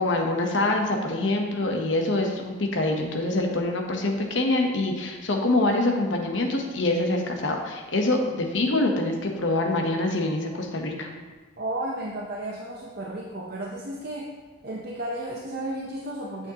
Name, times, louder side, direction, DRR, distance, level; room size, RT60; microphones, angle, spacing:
voice 1, 0.0-11.1, left 2 dB, 70° left, 2 dB, 0.9 m, -25 dB
voice 2, 11.6-14.3 14.6-16.5, right 1 dB, 50° right, -3 dB, 0.7 m, -33 dB
8.8 x 6.4 x 2.9 m, 1.3 s
head